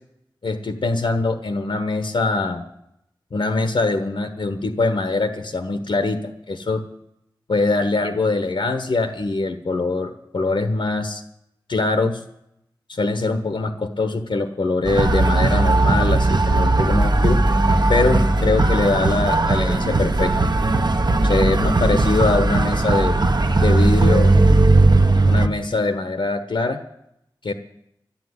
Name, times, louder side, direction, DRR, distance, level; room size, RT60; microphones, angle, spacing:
voice 1, 0.4-2.6 3.3-6.2 6.5-6.8 7.5-11.2 11.7-12.2 12.9-17.4 17.9-20.3 21.2-23.2 23.6-24.3 25.3-26.8 27.4-27.5, left 3 dB, 85° left, 8 dB, 1.2 m, -22 dB
sound 1, 14.8-25.5, right 2 dB, 55° right, 1.1 m, -17 dB
12.0 x 11.5 x 9.7 m, 0.78 s
wide cardioid pair, 60°, 9 cm